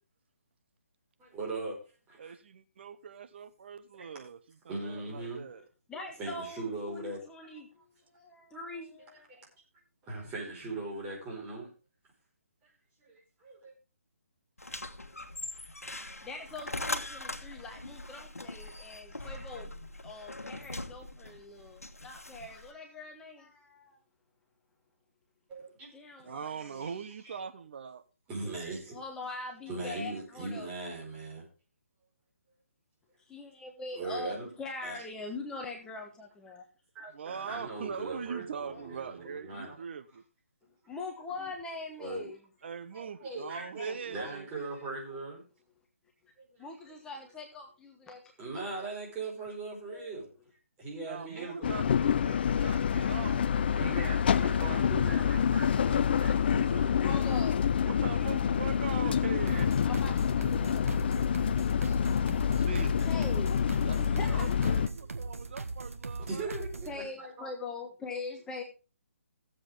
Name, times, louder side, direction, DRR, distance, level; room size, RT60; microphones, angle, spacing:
voice 1, 1.2-1.8 2.1-2.3 4.7-5.4 6.2-7.6 9.3-9.5 10.0-11.7 13.0-13.7 25.5-25.9 26.8-26.9 27.2-27.3 28.3-29.0 29.7-31.5 33.9-34.5 34.8-35.0 36.9-39.7 42.0-42.3 42.9-45.4 46.5-46.6 48.4-50.3 50.8-51.7 53.8-57.0 61.8-62.0 66.3-67.5, right 3 dB, 15° right, 4.7 m, -39 dB
voice 2, 2.2-5.7 26.2-28.0 37.1-40.2 42.6-44.5 51.0-54.4 57.8-59.8 62.5-62.9 63.9-66.6, right 6 dB, 50° right, 0.8 m, -42 dB
voice 3, 5.9-7.7 8.1-9.3 16.2-19.7 20.0-24.0 25.9-26.9 28.9-30.7 33.3-36.7 40.9-42.4 46.6-48.2 49.9-50.2 57.0-57.7 59.8-61.3 62.1-62.2 63.0-63.7 64.0-64.4 66.8-68.6, left 3 dB, 10° left, 1.3 m, -42 dB
sound 1, 14.6-22.7, left 2 dB, 90° left, 1.2 m, -41 dB
sound 2, 51.6-64.9, left 8 dB, 45° left, 0.5 m, -27 dB
sound 3, 59.5-67.0, right 3 dB, 75° right, 1.5 m, -40 dB
17.0 x 7.7 x 3.5 m
figure-of-eight pair, 145°, 8 cm